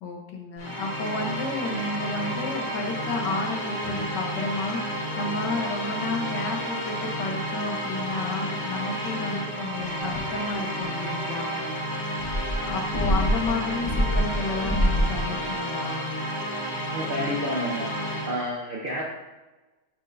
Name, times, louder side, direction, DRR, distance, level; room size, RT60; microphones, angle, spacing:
voice 1, 0.0-11.6 12.6-16.1, left 3 dB, 85° left, 2 dB, 1.6 m, -31 dB
sound 1, 0.6-18.5, equal, 35° left, 0.9 m, -31 dB
sound 2, 12.2-15.3, equal, 15° left, 1.4 m, -25 dB
voice 2, 16.9-17.9 18.2-19.0, equal, 55° right, -3 dB, 0.6 m, -30 dB
9.2 x 4.4 x 2.6 m, 1.2 s
omnidirectional pair, 1.9 m